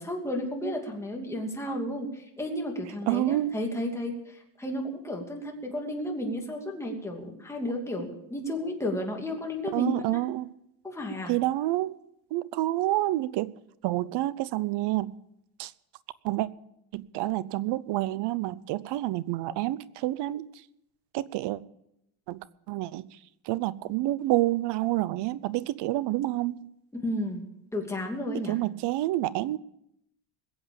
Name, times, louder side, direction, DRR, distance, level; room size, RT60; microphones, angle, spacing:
voice 1, 0.0-10.2 10.8-11.3 27.0-27.4 27.7-28.6, left 1 dB, 5° left, 0 dB, 2.6 m, -33 dB
voice 2, 3.1-3.5 9.7-10.5 11.3-12.0 12.3-13.5 13.8-15.1 15.6-15.7 16.2-16.5 16.9-20.5 21.1-21.6 22.3-22.4 22.7-23.0 23.5-26.7 28.3-29.6, right 16 dB, 60° right, 18 dB, 0.8 m, -28 dB
21.0 x 8.0 x 7.1 m, 0.80 s
cardioid pair, 145°, 47 cm